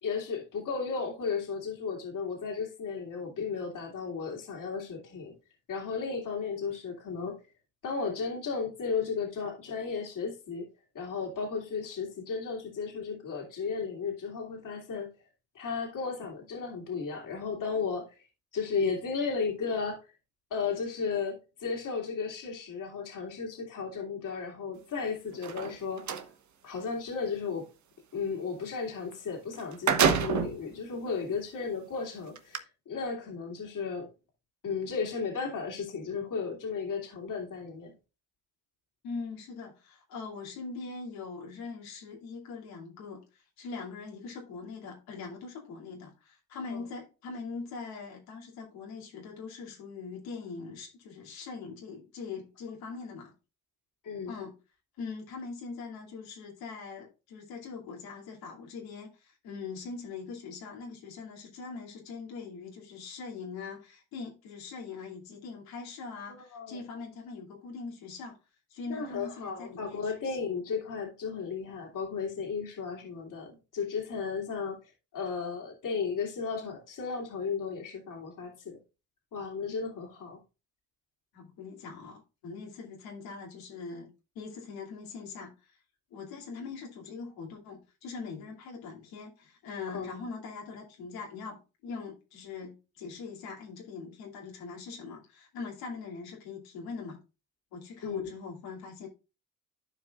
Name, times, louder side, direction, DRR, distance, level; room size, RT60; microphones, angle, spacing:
voice 1, 0.0-5.3 5.7-7.4 7.8-10.7 10.9-15.1 15.5-18.2 18.5-20.0 20.5-26.1 26.6-27.7 28.1-34.1 34.6-37.9 46.7-46.8 54.0-54.4 66.3-66.8 68.9-78.8 79.3-80.4 89.9-90.1 98.0-98.3, left 5 dB, 60° left, 2.9 m, -34 dB
sound 1, 25.3-26.3 29.1-29.2 29.5-30.6 31.3-31.4 32.4-32.6, right 7 dB, 50° right, 1.2 m, -27 dB
voice 2, 39.0-53.3 54.3-54.5 55.0-68.4 68.7-70.5 81.3-84.1 84.3-85.8 86.1-97.2 97.7-99.1, left 4 dB, 80° left, 2.6 m, -42 dB
14.0 x 4.9 x 2.4 m
supercardioid pair, 65°, 36 cm